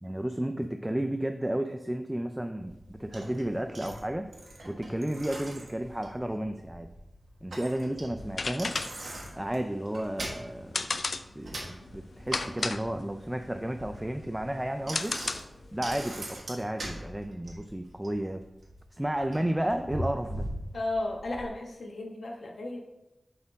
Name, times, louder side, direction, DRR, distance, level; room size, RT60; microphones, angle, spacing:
voice 1, 0.0-4.3 4.6-6.9 7.4-8.7 9.3-10.9 11.4-15.2 15.7-18.4 18.9-20.5, right 1 dB, 10° right, 6 dB, 0.4 m, -32 dB
Bicycle, 2.6-21.5, right 1 dB, 85° right, 1.4 m, -42 dB
sound 1, 8.2-15.8, left 3 dB, 70° left, 0.3 m, -35 dB
voice 2, 20.7-22.8, left 2 dB, 90° left, 1 dB, 1.2 m, -34 dB
7.1 x 4.4 x 3.9 m, 0.94 s
wide cardioid pair, 85°, 0 cm